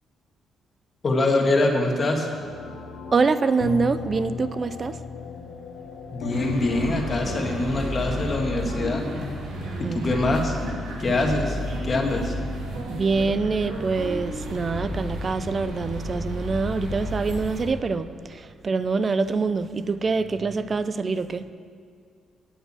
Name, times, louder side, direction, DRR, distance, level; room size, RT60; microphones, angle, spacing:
voice 1, 1.0-2.3 6.1-9.0 9.8-10.6 11.0-12.3, left 2 dB, 35° left, 1.8 m, -24 dB
sound 1, 2.3-8.6, left 4 dB, 85° left, 1.0 m, -36 dB
voice 2, 3.1-5.0 9.8-10.1 11.1-11.2 12.9-21.5, right 4 dB, 40° right, 0.5 m, -25 dB
sound 2, 6.3-17.6, equal, 85° right, 2.4 m, -32 dB
9.3 x 8.7 x 7.5 m
cardioid pair, 90°, 0 cm